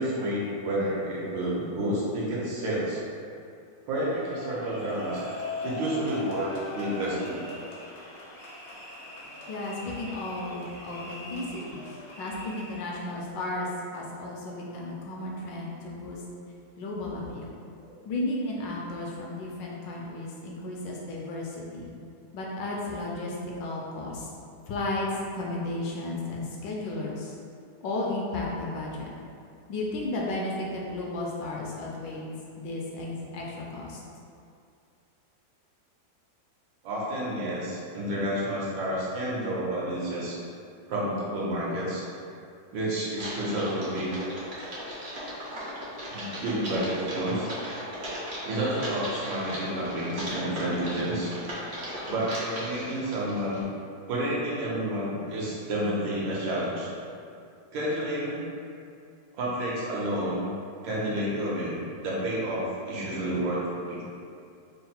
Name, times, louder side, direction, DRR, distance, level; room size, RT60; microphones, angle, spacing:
voice 1, 0.0-3.0 3.9-5.2 5.6-7.4 36.8-40.4 40.9-42.0 42.7-44.1 46.1-47.5 48.4-51.3 52.1-53.7 54.1-56.9 57.7-58.4 59.3-60.5 60.8-64.0, right 1 dB, 75° right, -6 dB, 1.5 m, -30 dB
sound 1, 4.0-12.9, left 2 dB, 60° left, 0.8 m, -40 dB
voice 2, 9.5-16.2 16.8-17.6 18.0-21.9 22.3-24.3 24.7-27.3 27.8-29.1 29.7-32.2 32.6-34.0, left 2 dB, 75° left, -3 dB, 1.2 m, -34 dB
Typing, 43.1-53.6, equal, 55° right, 0.7 m, -37 dB
3.8 x 2.0 x 4.2 m, 2.4 s
omnidirectional pair, 2.1 m